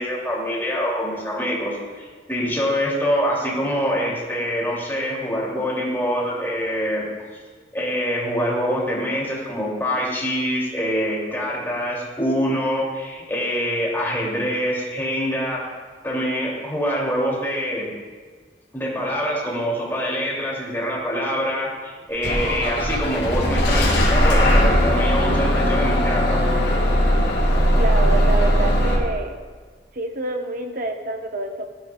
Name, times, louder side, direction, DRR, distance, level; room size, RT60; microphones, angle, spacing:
voice 1, 0.0-7.0 7.7-15.6 16.0-17.9 18.7-26.4, equal, 15° left, -5 dB, 2.6 m, -25 dB
Bus / Engine starting, 22.2-29.0, equal, 90° left, 2.4 m, -19 dB
voice 2, 27.8-29.4 29.9-31.7, right 2 dB, 50° right, 4 dB, 1.0 m, -27 dB
16.0 x 12.0 x 2.3 m, 1.5 s
head